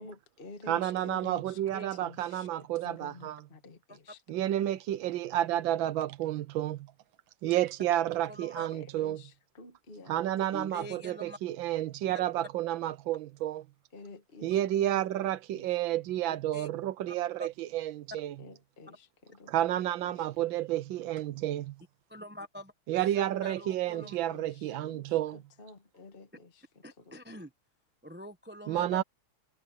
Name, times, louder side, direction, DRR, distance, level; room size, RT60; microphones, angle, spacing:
voice 1, 0.0-1.6 1.9-2.5 2.7-4.2 8.6-10.2 10.5-10.6 10.9-11.0 13.9-15.8 18.4-19.5 20.1-20.3 23.9-27.2, left 3 dB, 30° left, 1.8 m, -50 dB
voice 2, 0.7-3.4 4.3-6.9 7.4-9.2 10.1-13.6 14.4-18.3 19.5-21.7 22.9-25.4 28.7-29.0, right 13 dB, 75° right, 1.4 m, -31 dB
voice 3, 8.3-8.7 10.5-11.4 16.3-16.7 17.1-17.5 22.1-22.7 23.1-24.2 26.8-27.5 28.0-29.0, equal, 10° right, 0.5 m, -45 dB
omnidirectional pair, 2.2 m